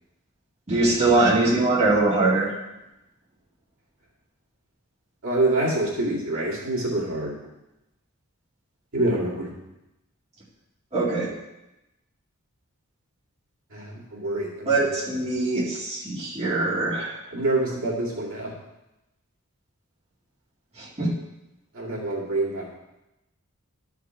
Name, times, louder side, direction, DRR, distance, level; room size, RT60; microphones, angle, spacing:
voice 1, 0.7-2.5 10.9-11.3 14.7-17.2 20.8-21.1, right 2 dB, 30° right, -7 dB, 2.3 m, -22 dB
voice 2, 5.2-7.3 8.9-9.5 13.7-15.0 17.3-18.5 21.7-22.8, right 2 dB, 65° right, -5 dB, 2.2 m, -26 dB
12.0 x 4.8 x 4.5 m, 0.95 s
head